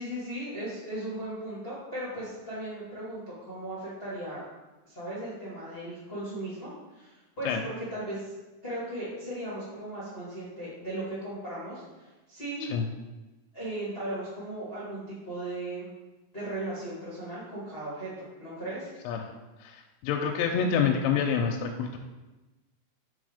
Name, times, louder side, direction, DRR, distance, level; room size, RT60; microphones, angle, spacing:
voice 1, 0.0-4.4 4.8-8.3 8.6-12.6 13.5-15.9 16.3-18.9, right 1 dB, 70° left, -10 dB, 0.5 m, -37 dB
voice 2, 19.6-22.0, left 6 dB, 90° left, 2 dB, 2.8 m, -27 dB
6.2 x 3.9 x 4.9 m, 1.1 s
omnidirectional pair, 4.9 m